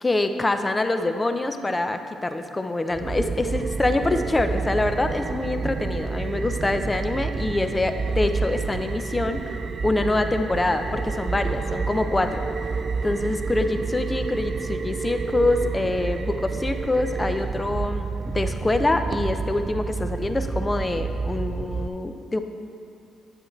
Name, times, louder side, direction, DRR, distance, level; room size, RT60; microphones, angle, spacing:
voice 1, 0.0-12.4 13.0-22.4, left 2 dB, 20° left, 8 dB, 0.5 m, -25 dB
sound 1, 2.9-21.9, right 4 dB, 45° right, 0.3 m, -29 dB
8.8 x 8.0 x 3.2 m, 2.5 s
cardioid pair, 90°, 0 cm